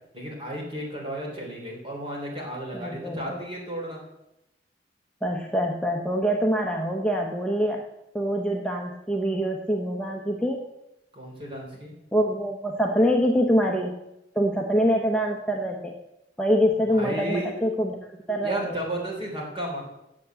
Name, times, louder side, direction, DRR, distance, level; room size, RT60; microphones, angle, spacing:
voice 1, 0.1-4.0 11.1-11.9 16.9-17.5 18.4-19.8, right 1 dB, 30° right, -1 dB, 3.3 m, -33 dB
voice 2, 2.7-3.4 5.2-7.8 8.1-10.6 12.1-13.9 14.3-15.9 16.4-18.0 18.3-18.8, equal, 5° left, 0 dB, 0.8 m, -25 dB
8.5 x 7.4 x 8.2 m, 0.90 s
head